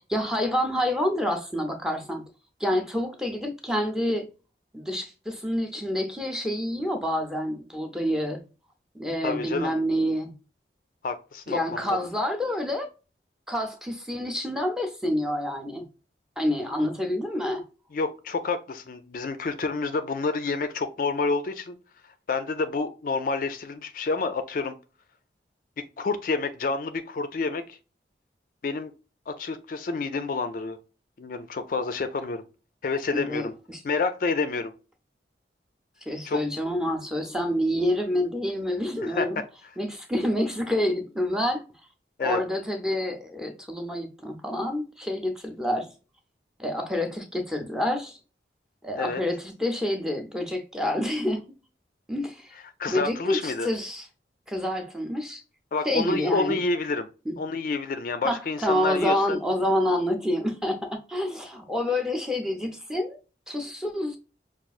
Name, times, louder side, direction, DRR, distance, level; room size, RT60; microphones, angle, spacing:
voice 1, 0.0-2.2 2.6-4.3 4.7-8.4 8.9-10.3 11.5-12.9 13.5-15.8 16.4-17.6 33.1-33.8 36.1-39.4 39.8-41.6 42.2-45.9 46.6-48.2 48.8-51.4 52.1-52.5 52.9-54.1 54.5-55.4 55.8-56.6 57.3-57.4 58.2-63.2 63.5-64.2, left 1 dB, 5° right, 0.5 m, -28 dB
voice 2, 9.2-9.7 11.0-12.0 17.9-21.8 22.3-24.7 26.0-27.8 28.6-28.9 29.3-30.8 31.2-32.4 32.8-33.5 33.8-34.7 36.3-36.4 39.0-39.3 42.2-42.4 49.0-49.2 52.8-53.7 55.7-57.1 57.4-59.4, left 4 dB, 50° left, 0.3 m, -28 dB
5.8 x 2.4 x 2.4 m
head